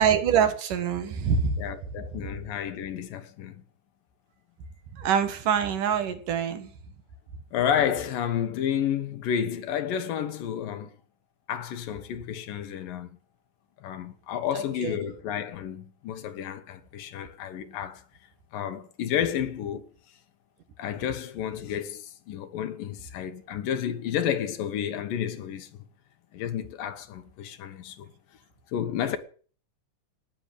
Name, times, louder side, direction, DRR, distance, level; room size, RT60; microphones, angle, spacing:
voice 1, 0.0-1.6 4.9-6.7 14.5-15.0, right 7 dB, 70° right, 3.2 m, -25 dB
voice 2, 1.6-3.6 7.5-10.9 11.5-13.2 13.8-18.0 18.5-19.8 20.8-25.7 26.3-28.1 28.7-29.2, left 9 dB, 75° left, 3.0 m, -31 dB
18.0 x 7.2 x 10.0 m
omnidirectional pair, 4.0 m